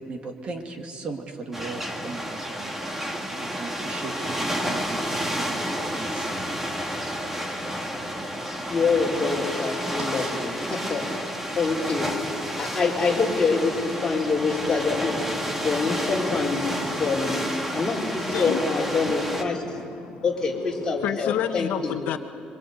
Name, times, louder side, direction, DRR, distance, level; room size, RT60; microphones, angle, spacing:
voice 1, 0.0-6.3 10.1-10.7, right 3 dB, 40° right, 4 dB, 2.2 m, -38 dB
sound 1, 1.5-19.4, equal, 10° right, 1.8 m, -30 dB
voice 2, 8.7-11.3 11.6-12.1 12.6-17.4 17.7-19.6 20.2-21.9, left 4 dB, 20° left, -4 dB, 4.5 m, -26 dB
voice 3, 18.3-20.3 20.6-22.2, left 11 dB, 70° left, 7 dB, 1.1 m, -31 dB
27.0 x 24.0 x 8.2 m, 2.3 s
cardioid pair, 160°, 3 cm